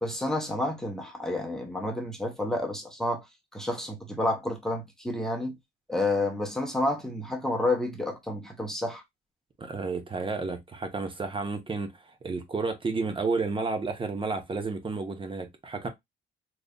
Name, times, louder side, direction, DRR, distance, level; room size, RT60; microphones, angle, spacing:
voice 1, 0.0-3.2 3.5-5.5 5.9-9.0, left 1 dB, 5° left, 1.0 m, -30 dB
voice 2, 9.6-11.9 12.2-15.9, right 4 dB, 25° right, 1.0 m, -31 dB
4.0 x 3.2 x 2.3 m
cardioid pair, 110°, 20 cm